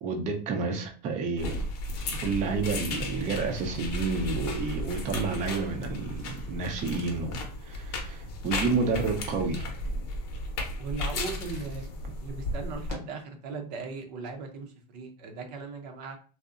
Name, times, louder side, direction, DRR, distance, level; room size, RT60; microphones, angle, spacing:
voice 1, 0.0-1.6 2.2-9.7, right 4 dB, 35° right, 0.5 m, -30 dB
sound 1, 1.4-12.9, left 1 dB, 65° left, 0.7 m, -34 dB
voice 2, 10.8-11.8 12.2-16.2, right 4 dB, 75° right, 0.6 m, -38 dB
2.6 x 2.0 x 2.4 m
supercardioid pair, 120°, 21 cm